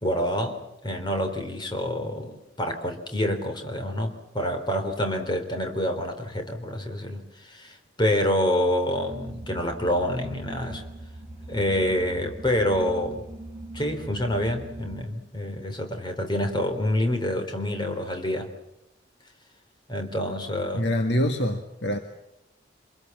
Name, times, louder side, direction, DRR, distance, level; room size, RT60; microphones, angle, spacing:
voice 1, 0.0-10.8 11.5-13.2 13.7-18.5 19.9-20.9, left 1 dB, 25° left, 5 dB, 3.6 m, -27 dB
sound 1, 9.1-15.0, right 2 dB, 10° right, 4.3 m, -41 dB
voice 2, 20.7-22.0, equal, 70° left, 5 dB, 1.8 m, -25 dB
27.0 x 22.0 x 7.3 m, 0.89 s
head